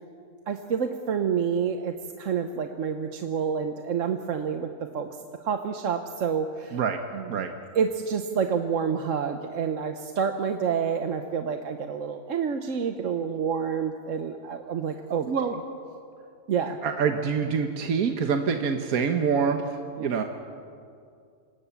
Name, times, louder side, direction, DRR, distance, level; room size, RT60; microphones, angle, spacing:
voice 1, 0.5-5.1 5.4-6.8 7.1-7.5 7.7-15.3 16.5-16.8 20.0-20.2, right 6 dB, 60° right, 7 dB, 1.2 m, -28 dB
voice 2, 16.8-19.6 20.0-20.2, right 6 dB, 75° right, 5 dB, 1.6 m, -25 dB
27.0 x 18.5 x 7.1 m, 2.4 s
omnidirectional pair, 1.5 m